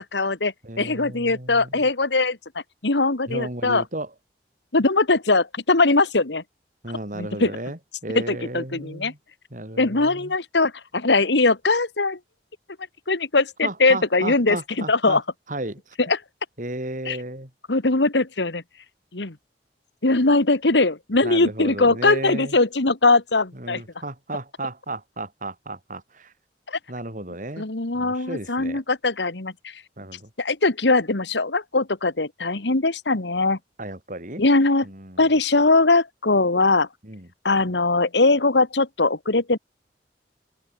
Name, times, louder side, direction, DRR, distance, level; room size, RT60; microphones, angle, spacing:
voice 1, 0.0-2.4 2.8-3.8 4.7-6.4 7.1-7.5 8.2-9.1 9.8-12.2 13.1-15.2 16.0-16.2 17.1-17.2 17.7-18.6 19.1-19.4 20.0-23.8 26.7-26.8 27.6-29.7 30.4-33.6 34.4-34.9 35.2-36.9 37.4-39.6, left 3 dB, 80° left, 1.9 m, -21 dB
voice 2, 0.6-1.8 3.3-4.1 6.8-9.2 9.5-10.3 13.6-15.2 15.5-15.8 16.6-17.5 21.2-22.6 23.5-26.3 26.9-27.6 28.0-28.8 30.0-30.3 33.8-34.4 34.8-35.3 37.0-37.3, right 1 dB, 45° right, 6.8 m, -34 dB
head